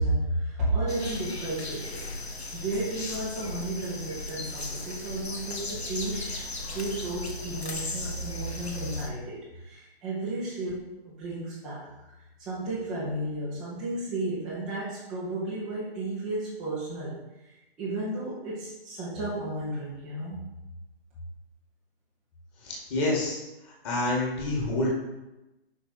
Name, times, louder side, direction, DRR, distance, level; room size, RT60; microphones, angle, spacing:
voice 1, 0.0-2.1 2.5-6.4 6.7-11.9 12.4-17.1 17.8-20.4, right 2 dB, ahead, -11 dB, 0.4 m, -33 dB
sound 1, 0.9-9.1, left 2 dB, 85° left, 1.0 m, -36 dB
voice 2, 22.6-23.4 23.8-24.9, left 2 dB, 25° left, -4 dB, 1.8 m, -27 dB
5.9 x 4.9 x 4.0 m, 0.99 s
figure-of-eight pair, 135°, 31 cm